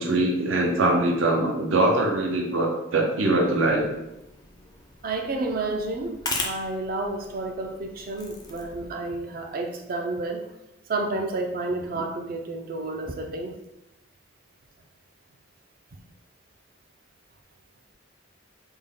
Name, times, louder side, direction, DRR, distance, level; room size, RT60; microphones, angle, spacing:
voice 1, 0.0-3.9, right 2 dB, 85° right, 0 dB, 0.7 m, -22 dB
sound 1, 3.4-8.9, left 3 dB, 20° left, 0.4 m, -38 dB
voice 2, 5.0-10.5 10.9-13.6, right 2 dB, 45° right, 4 dB, 0.4 m, -30 dB
3.5 x 2.2 x 3.6 m, 0.89 s
head